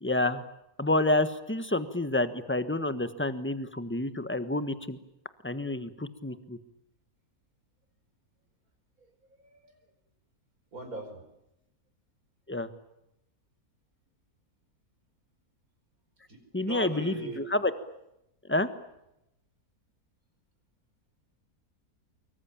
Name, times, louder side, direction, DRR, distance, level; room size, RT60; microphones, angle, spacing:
voice 1, 0.0-0.4 0.8-5.0 5.4-6.6 12.5-12.7 16.5-17.7 18.5-18.7, left 2 dB, 10° left, 11 dB, 1.3 m, -29 dB
voice 2, 9.4-9.7 10.7-11.2 16.3-17.4, right 2 dB, 60° right, 6 dB, 5.3 m, -40 dB
25.0 x 23.0 x 8.9 m, 0.84 s
omnidirectional pair, 1.7 m